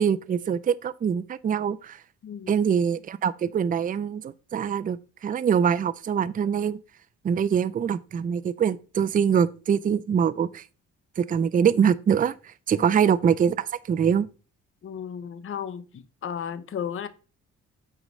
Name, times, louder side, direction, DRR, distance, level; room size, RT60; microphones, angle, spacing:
voice 1, 0.0-2.0 2.5-5.0 5.2-6.8 7.2-10.6 11.2-14.3, right 7 dB, 30° right, 0.4 m, -24 dB
voice 2, 14.8-17.1, left 8 dB, 45° left, 0.8 m, -34 dB
8.3 x 3.0 x 5.3 m
cardioid pair, 90°, 30 cm